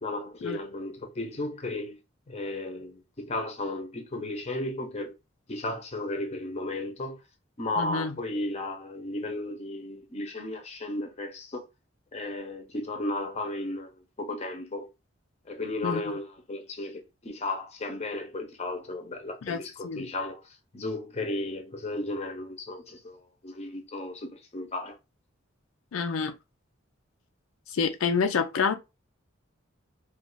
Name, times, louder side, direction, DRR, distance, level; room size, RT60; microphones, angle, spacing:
voice 1, 0.0-2.0 2.3-5.1 5.5-7.2 7.6-11.7 12.1-13.9 14.2-14.9 15.5-20.4 20.7-23.2 23.4-25.0, left 2 dB, 35° left, 0.7 m, -34 dB
voice 2, 7.8-8.1 15.8-16.1 19.4-20.1 25.9-26.3 27.7-28.7, left 5 dB, 85° left, 0.4 m, -28 dB
2.4 x 2.4 x 3.8 m
head